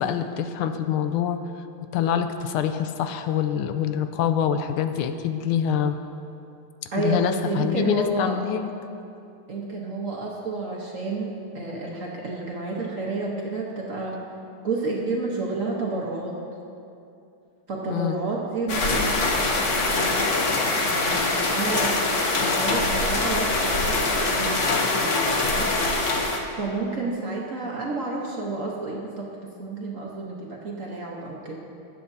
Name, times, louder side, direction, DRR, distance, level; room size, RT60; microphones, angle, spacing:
voice 1, 0.0-1.4 1.9-6.0 6.9-8.7 17.9-18.2, left 8 dB, 85° left, 8 dB, 1.5 m, -25 dB
voice 2, 6.9-8.4 9.5-14.1 14.6-16.4 17.7-20.3 20.7-25.7 26.6-29.3 29.6-31.6, right 3 dB, 50° right, -3 dB, 1.1 m, -30 dB
sound 1, 18.7-26.4, left 2 dB, 50° left, 0.9 m, -23 dB
19.5 x 7.8 x 2.7 m, 2.6 s
omnidirectional pair, 2.4 m